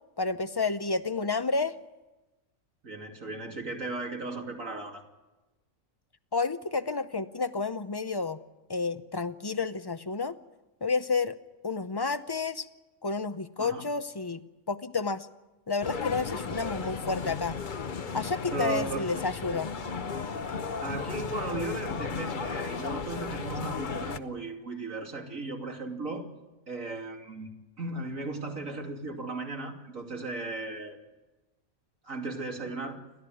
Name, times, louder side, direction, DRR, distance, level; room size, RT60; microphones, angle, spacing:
voice 1, 0.2-1.7 6.3-8.4 8.7-10.4 10.8-11.4 11.6-12.7 13.0-14.4 14.7-15.3 15.7-17.6 18.1-19.7, left 4 dB, 25° left, 12 dB, 0.6 m, -30 dB
voice 2, 2.8-5.0 13.6-13.8 18.5-19.0 20.8-26.3 26.7-27.5 27.8-31.0 32.0-33.0, right 3 dB, 80° right, 2 dB, 3.2 m, -36 dB
sound 1, 15.8-24.2, left 5 dB, 40° left, 1.0 m, -35 dB
29.5 x 13.0 x 9.3 m, 1.1 s
omnidirectional pair, 1.4 m